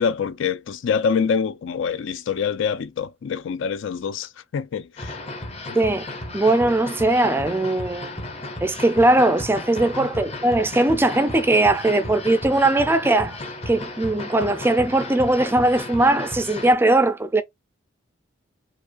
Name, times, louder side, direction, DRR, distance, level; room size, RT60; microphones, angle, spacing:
voice 1, 0.0-5.2 5.7-5.8 10.0-10.1, left 6 dB, 65° left, 0.4 m, -25 dB
sound 1, 5.0-16.8, left 2 dB, 30° left, 0.7 m, -34 dB
voice 2, 5.8-6.1 6.3-8.1 8.6-13.4 13.7-17.4, right 2 dB, 10° right, 0.3 m, -19 dB
4.8 x 2.2 x 2.4 m
head